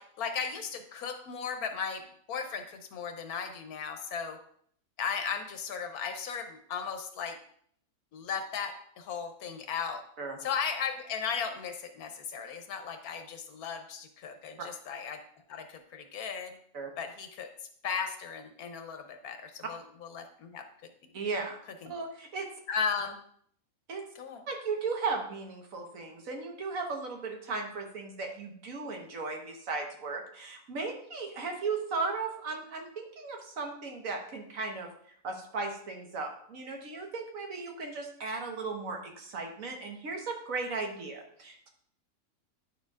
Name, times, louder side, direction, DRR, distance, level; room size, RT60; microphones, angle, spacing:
voice 1, 0.0-2.0 2.3-4.4 5.0-7.4 8.1-10.0 10.4-15.2 15.5-16.5 17.0-17.5 17.8-20.6 21.8-21.9 22.7-23.2 24.1-24.4, left 6 dB, 90° left, 6 dB, 1.3 m, -36 dB
voice 2, 21.1-21.6 21.9-22.5 23.9-24.0 24.5-34.9 35.2-41.7, right 4 dB, 65° right, 3 dB, 1.6 m, -36 dB
9.7 x 6.6 x 2.4 m, 0.63 s
omnidirectional pair, 1.5 m